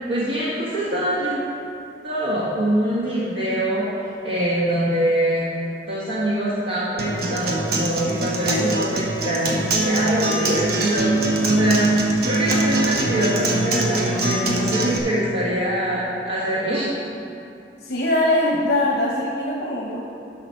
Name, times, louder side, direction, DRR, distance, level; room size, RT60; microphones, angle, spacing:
voice 1, 0.1-1.4 2.0-4.0 4.2-5.5 5.9-11.2 11.4-16.9, right 1 dB, 90° right, -8 dB, 1.6 m, -24 dB
Acoustic guitar, 7.0-15.0, right 2 dB, 60° right, 1.1 m, -23 dB
voice 2, 17.8-20.0, left 1 dB, 65° left, -3 dB, 1.1 m, -21 dB
11.0 x 5.9 x 5.8 m, 2.6 s
head